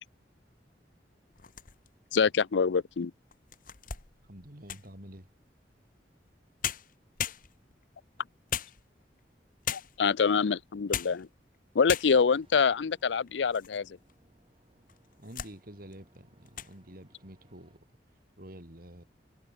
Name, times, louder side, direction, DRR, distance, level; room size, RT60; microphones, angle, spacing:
sound 1, 1.3-2.1 2.7-2.8 3.3-5.0 6.3-6.4 6.6-7.8 8.5-9.2 9.6-10.1 10.7-11.3 11.5-11.6 11.9-12.4 13.0-13.8 14.1-14.2 14.9-15.6 15.9-16.2 16.5-16.7, left 9 dB, 50° left, 1.7 m, -37 dB
voice 1, 2.1-3.1 9.7-11.3 11.7-13.9, left 5 dB, 90° left, 0.5 m, -25 dB
voice 2, 4.2-5.3 15.2-17.9 18.4-19.0, right 1 dB, 55° right, 4.4 m, -48 dB
sound 2, 12.4-17.8, right 1 dB, 30° right, 7.1 m, -67 dB
head